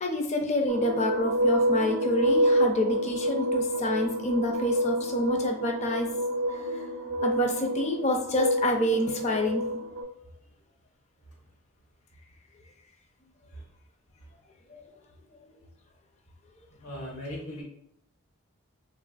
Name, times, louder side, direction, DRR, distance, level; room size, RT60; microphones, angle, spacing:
voice 1, 0.0-6.1 6.5-6.6 7.2-9.7 14.7-14.8, left 1 dB, 30° left, 2 dB, 0.4 m, -28 dB
sound 1, 0.7-10.0, equal, 65° right, 0.5 m, -28 dB
voice 2, 16.8-17.6, equal, 85° left, -1 dB, 0.8 m, -39 dB
3.3 x 2.5 x 2.3 m, 0.75 s
head